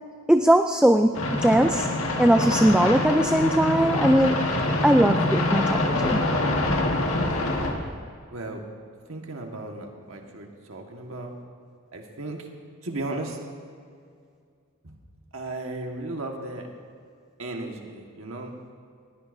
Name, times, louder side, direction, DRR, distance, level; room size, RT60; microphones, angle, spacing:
voice 1, 0.3-1.9 2.2-4.4 4.8-6.2, right 1 dB, 5° right, 6 dB, 0.3 m, -20 dB
sound 1, 1.1-7.7, left 2 dB, 75° left, 1.7 m, -25 dB
voice 2, 8.3-8.6 9.1-11.3 11.9-12.5 12.8-13.4 14.8-15.0 15.3-16.7 17.4-18.5, right 2 dB, 70° right, 2 dB, 1.5 m, -35 dB
20.0 x 16.5 x 2.6 m, 2.2 s
head